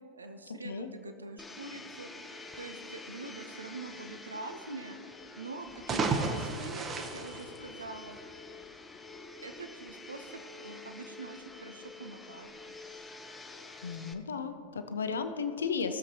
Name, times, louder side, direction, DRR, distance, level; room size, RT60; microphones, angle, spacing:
voice 1, 0.1-2.1 2.5-5.0 5.4-8.2 9.4-12.5, right 3 dB, 75° right, 8 dB, 0.7 m, -44 dB
Domestic sounds home sounds, 1.4-14.1, left 3 dB, 10° left, 0.7 m, -48 dB
sound 1, 5.7-8.3, right 4 dB, 25° right, 0.9 m, -33 dB
voice 2, 13.8-16.0, left 5 dB, 70° left, 8 dB, 0.6 m, -34 dB
18.0 x 7.3 x 2.9 m, 2.8 s
figure-of-eight pair, 90°, 0 cm